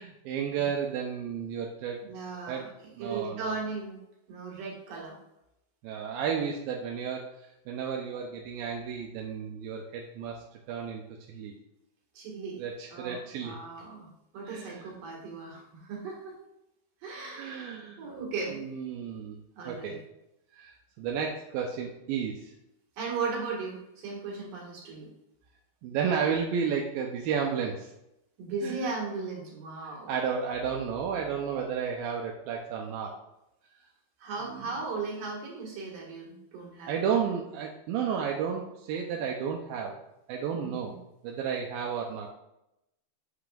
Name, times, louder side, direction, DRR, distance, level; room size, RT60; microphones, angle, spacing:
voice 1, 0.0-2.0 2.5-2.6 3.0-3.5 5.8-7.2 7.7-11.0 11.3-11.5 12.6-13.6 14.5-14.9 17.3-18.1 18.5-19.4 19.7-20.0 20.5-22.5 25.8-27.9 28.6-28.8 30.1-33.1 34.4-34.7 36.9-40.0 40.3-41.0 41.2-42.3, right 7 dB, 75° right, 0 dB, 2.3 m, -32 dB
voice 2, 2.0-4.0 4.3-5.2 12.1-12.6 12.9-16.4 17.0-18.6 19.5-20.0 23.0-25.1 28.4-30.1 34.2-37.0 40.5-41.0, right 4 dB, 60° right, -2 dB, 3.3 m, -37 dB
8.2 x 7.9 x 2.5 m, 0.86 s
omnidirectional pair, 4.6 m